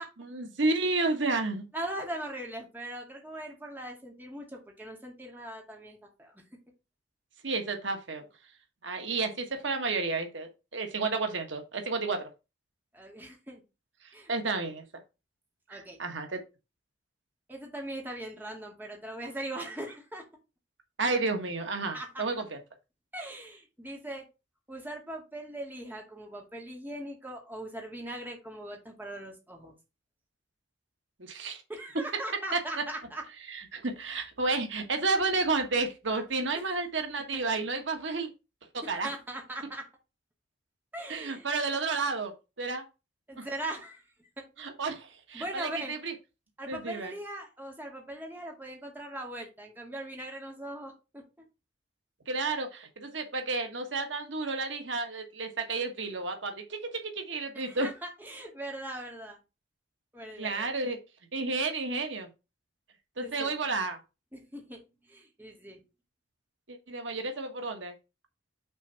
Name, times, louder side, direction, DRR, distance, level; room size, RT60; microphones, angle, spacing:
voice 1, 0.2-1.6 7.4-8.2 8.8-12.3 14.3-14.8 15.7-16.4 21.0-22.6 31.2-31.6 32.5-32.6 33.5-38.3 38.7-39.1 41.1-42.3 42.6-42.8 43.4-43.5 44.6-46.1 46.7-47.1 52.3-57.9 60.4-61.0 61.3-62.3 63.2-64.0 66.7-67.9, right 3 dB, 85° right, 5 dB, 1.5 m, -31 dB
voice 2, 1.7-6.4 12.9-13.6 14.1-14.6 15.7-16.0 17.5-20.2 21.9-22.2 23.1-24.2 24.7-29.7 31.7-33.2 37.3-37.4 38.8-39.9 40.9-41.5 43.3-44.5 45.3-45.9 46.6-51.2 57.5-59.4 60.1-60.7 63.2-63.5 64.3-65.8, right 1 dB, 10° right, 0 dB, 2.1 m, -40 dB
6.2 x 4.2 x 5.6 m, 0.27 s
head